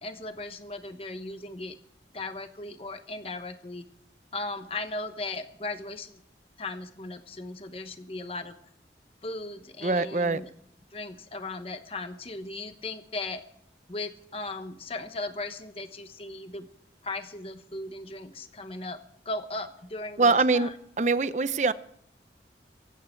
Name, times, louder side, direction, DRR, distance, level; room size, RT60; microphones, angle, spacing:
voice 1, 0.0-1.8 2.1-3.9 4.3-6.2 6.6-8.5 9.2-10.5 10.9-13.4 13.9-16.7 17.0-19.0 19.2-20.7, left 2 dB, 35° left, 9 dB, 1.0 m, -37 dB
voice 2, 9.8-10.4 20.2-20.7 21.0-21.7, right 3 dB, 40° right, 14 dB, 0.7 m, -23 dB
24.0 x 9.4 x 4.6 m, 0.71 s
head